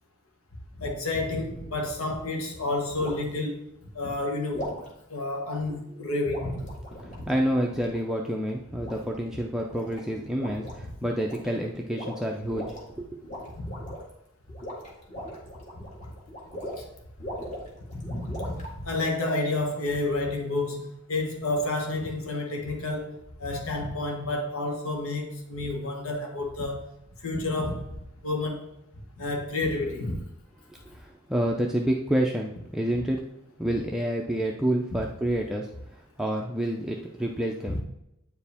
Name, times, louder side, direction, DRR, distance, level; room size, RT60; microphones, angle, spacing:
voice 1, 0.8-3.6 3.9-4.7 5.1-6.6 7.2-7.3 13.6-13.9 15.7-16.1 16.7-16.8 17.9-23.1 23.4-26.8 27.2-27.8 28.2-28.6 29.2-30.2 37.7-37.8, left 2 dB, 85° left, 1 dB, 1.4 m, -30 dB
sound 1, 1.8-2.0 3.0-3.3 4.5-4.9 6.3-8.1 8.8-9.3 9.6-10.0 10.3-10.8 11.1-11.6 11.9-12.8 13.2-14.1 14.5-16.9 17.2-18.7, equal, 35° left, 1.8 m, -39 dB
voice 2, 7.0-13.2 30.9-33.3 33.6-35.7 35.9-37.8, right 1 dB, ahead, -1 dB, 0.4 m, -28 dB
8.8 x 4.7 x 3.5 m, 0.83 s
head